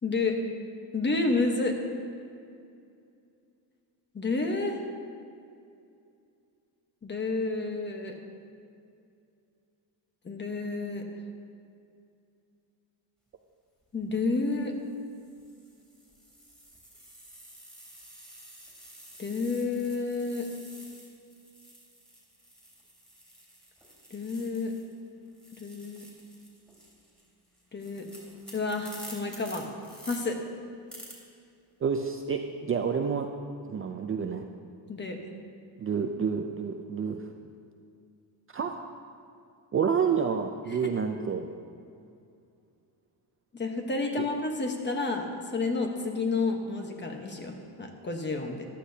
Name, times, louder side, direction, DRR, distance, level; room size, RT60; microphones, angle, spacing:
voice 1, 0.0-0.4 0.9-1.7 4.1-4.8 7.0-8.1 10.2-11.0 13.9-14.7 19.2-20.5 24.1-24.7 25.6-26.0 27.7-28.1 28.5-29.7 30.1-30.4 34.9-35.2 40.7-40.9 43.5-48.7, left 3 dB, 25° left, 3 dB, 1.1 m, -30 dB
sound 1, 13.8-14.1 14.8-25.0 25.3-30.2 30.9-31.1, right 1 dB, ahead, 3.1 m, -50 dB
voice 2, 31.8-33.3 33.7-34.4 35.8-37.2 38.5-38.8 39.7-41.5 44.2-44.3, right 6 dB, 30° right, 4 dB, 0.5 m, -29 dB
14.5 x 11.5 x 2.8 m, 2.5 s
cardioid pair, 140°, 44 cm